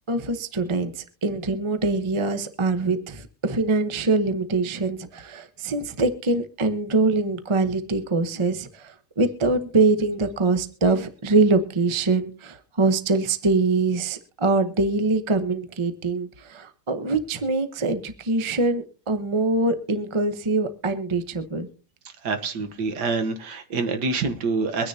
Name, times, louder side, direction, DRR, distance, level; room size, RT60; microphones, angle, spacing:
voice 1, 0.1-21.7, right 3 dB, 30° right, 9 dB, 0.5 m, -24 dB
voice 2, 22.2-24.9, right 4 dB, 60° right, 8 dB, 1.6 m, -26 dB
24.0 x 9.9 x 2.8 m, 0.38 s
omnidirectional pair, 2.2 m